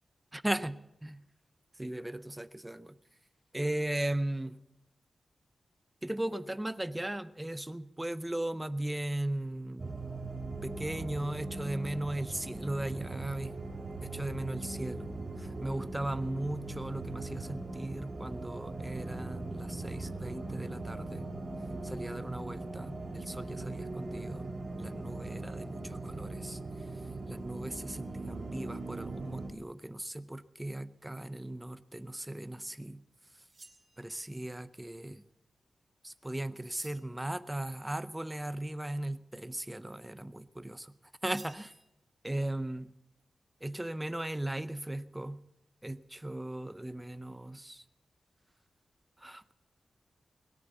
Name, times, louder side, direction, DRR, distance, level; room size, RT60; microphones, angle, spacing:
voice 1, 0.3-1.2 1.8-3.0 3.5-4.6 6.0-10.0 10.6-13.6 14.0-21.3 21.8-27.0 27.3-33.0 33.3-33.4 34.0-35.2 36.0-40.9 41.2-41.7 42.2-42.9 43.6-45.4 45.8-47.8 49.2-49.5, right 1 dB, 10° right, 14 dB, 0.5 m, -37 dB
sound 1, 9.8-29.5, right 2 dB, 50° right, 2.8 m, -40 dB
sound 2, 33.5-34.4 36.6-37.3 41.3-41.7, right 3 dB, 35° right, 3.2 m, -53 dB
21.0 x 8.9 x 7.1 m, 0.89 s
wide cardioid pair, 115°, 0 cm